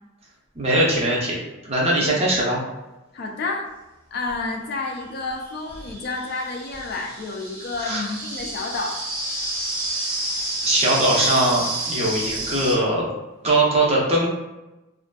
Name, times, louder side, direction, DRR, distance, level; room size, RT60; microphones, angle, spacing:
voice 1, 0.6-1.4 1.6-2.6 7.8-8.0 10.6-13.1 13.4-14.3, right 1 dB, 30° right, -4 dB, 0.6 m, -21 dB
voice 2, 3.1-3.7 4.1-9.0, left 3 dB, 50° left, 2 dB, 0.3 m, -30 dB
sound 1, 4.3-4.4 5.3-12.8, right 2 dB, 80° right, 0.8 m, -29 dB
2.5 x 2.4 x 2.2 m, 1.0 s
head